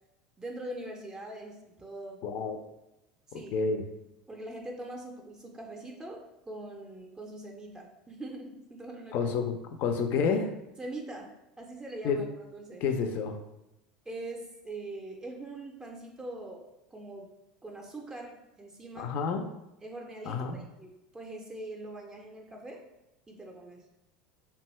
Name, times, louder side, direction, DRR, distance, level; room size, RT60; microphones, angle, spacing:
voice 1, 0.4-2.2 3.3-3.5 4.3-9.3 10.8-12.8 14.1-16.6 16.9-17.3 17.6-19.1 19.8-22.8 23.3-23.9, right 2 dB, 15° right, 0 dB, 0.4 m, -42 dB
voice 2, 2.2-2.6 3.3-3.9 9.1-10.5 12.0-12.2 12.8-13.4 19.0-19.4 20.3-20.6, left 5 dB, 50° left, 7 dB, 0.4 m, -29 dB
2.6 x 2.2 x 3.0 m, 0.91 s
hypercardioid pair, 80°, 4 cm